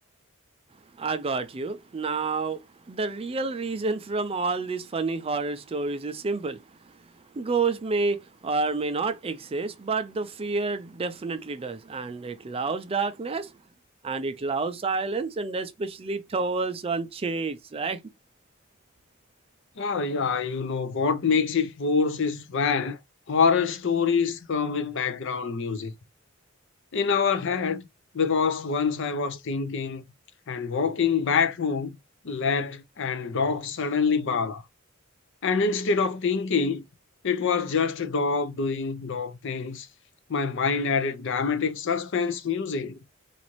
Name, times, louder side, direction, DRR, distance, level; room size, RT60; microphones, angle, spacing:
voice 1, 1.0-6.6 7.3-13.5 14.0-18.0, right 4 dB, 30° right, 0.4 m, -29 dB
voice 2, 19.8-23.0 23.3-25.9 26.9-27.8 28.1-30.0 30.5-31.9 32.2-34.6 35.4-36.8 37.2-39.9 40.3-43.0, left 5 dB, 65° left, 0.6 m, -26 dB
4.0 x 2.5 x 3.0 m
head